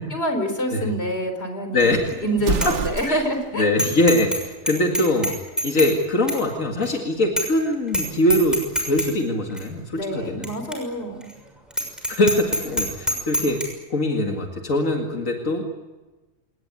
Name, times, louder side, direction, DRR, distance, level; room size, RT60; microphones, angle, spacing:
voice 1, 0.1-3.6 9.9-11.3, equal, 55° left, 6 dB, 4.6 m, -26 dB
Bicycle bell, 1.8-2.1 2.5-2.7 3.1-3.2 3.8-4.4 4.7-5.9 6.3-6.4 6.8-6.9 7.4-7.6 7.9-8.0 8.3-9.1 9.6-9.7 10.4-10.5 10.7-10.8 11.2-11.3 11.7-13.7, equal, ahead, 6.3 m, -25 dB
Explosion, 2.4-3.5, right 6 dB, 65° right, 1.3 m, -27 dB
voice 2, 3.5-5.4 5.6-10.5 12.1-13.6 13.9-15.6, left 1 dB, 85° left, 2 dB, 2.6 m, -22 dB
27.5 x 19.0 x 9.7 m, 1.2 s
omnidirectional pair, 1.3 m